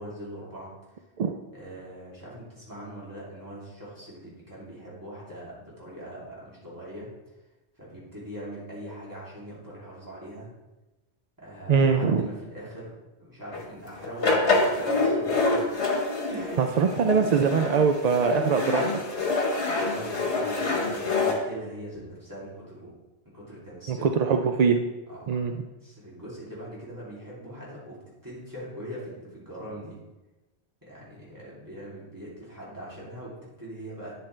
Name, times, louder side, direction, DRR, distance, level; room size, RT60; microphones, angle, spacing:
voice 1, 0.0-1.0 1.5-7.1 7.8-10.5 11.4-12.9 13.2-15.6 16.3-17.1 19.7-22.9 23.2-24.5 25.1-25.4 25.8-30.0 30.8-34.2, right 1 dB, 15° right, -7 dB, 2.8 m, -41 dB
voice 2, 11.7-12.3 16.6-18.9 23.9-24.8 25.3-25.5, right 6 dB, 60° right, 6 dB, 0.4 m, -22 dB
sound 1, 13.5-13.6 14.0-21.3, left 3 dB, 80° left, 1.7 m, -26 dB
9.1 x 7.5 x 3.3 m, 1.1 s
omnidirectional pair, 1.1 m